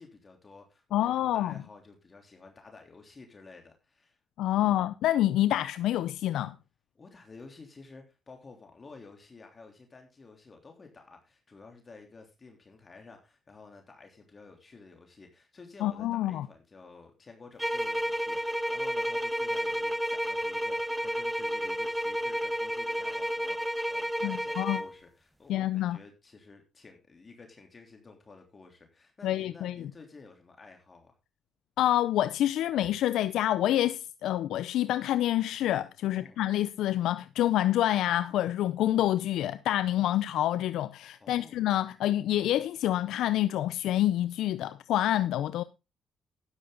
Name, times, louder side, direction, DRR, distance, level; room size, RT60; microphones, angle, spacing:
voice 1, 0.0-4.2 4.6-4.8 6.9-31.2 32.8-32.9 36.0-36.4 41.2-41.6, left 4 dB, 30° left, 3.3 m, -52 dB
voice 2, 0.9-1.5 4.4-6.5 15.8-16.5 24.2-24.8 25.5-26.0 29.2-29.8 31.8-45.6, left 13 dB, 85° left, 0.5 m, -27 dB
sound 1, 17.6-25.0, equal, ahead, 1.0 m, -31 dB
13.0 x 10.5 x 3.9 m
cardioid pair, 90°, 0 cm